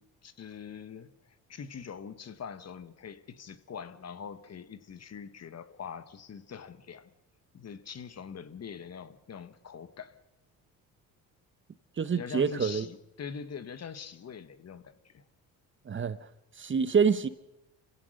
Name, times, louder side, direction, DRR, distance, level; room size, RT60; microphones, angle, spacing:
voice 1, 0.0-7.1 7.5-10.2 12.1-15.2, left 6 dB, 45° left, 1.5 m, -43 dB
voice 2, 12.0-12.9 15.9-16.2 16.6-17.3, right 6 dB, 30° right, 1.1 m, -26 dB
27.0 x 16.0 x 6.6 m
cardioid pair, 90°, 37 cm